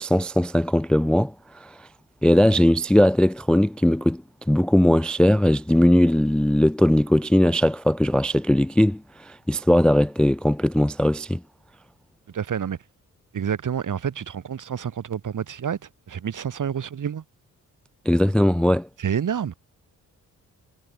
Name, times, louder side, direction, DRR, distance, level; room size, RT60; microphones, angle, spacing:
voice 1, 0.0-1.9 2.2-4.2 4.5-11.4 18.1-18.9, left 1 dB, 5° left, 0.3 m, -19 dB
voice 2, 12.3-12.8 13.3-15.8 16.1-17.2 19.0-19.5, right 8 dB, 60° right, 3.9 m, -28 dB
cardioid pair, 100°, 34 cm